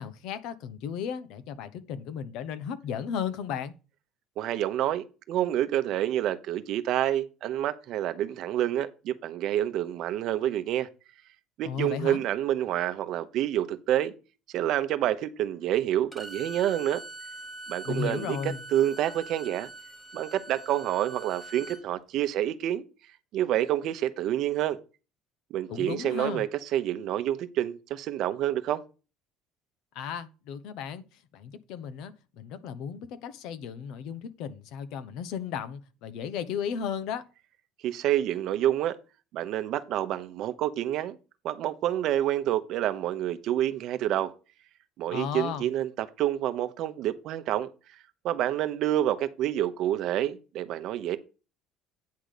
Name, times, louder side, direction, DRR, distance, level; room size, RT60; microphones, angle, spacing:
voice 1, 0.0-3.7 11.6-12.2 17.8-18.6 25.7-26.4 29.9-37.2 45.1-45.7, left 7 dB, 70° left, 1.0 m, -35 dB
voice 2, 4.4-10.9 11.6-14.1 14.5-17.0 17.7-18.4 18.7-19.7 20.1-22.8 23.3-24.8 25.5-28.8 37.8-39.0 39.3-41.2 41.4-44.3 45.0-47.7 48.2-51.2, right 12 dB, 60° right, 0.9 m, -28 dB
Bowed string instrument, 16.1-21.8, right 2 dB, 10° left, 1.6 m, -43 dB
9.4 x 3.8 x 6.6 m
cardioid pair, 115°, 0 cm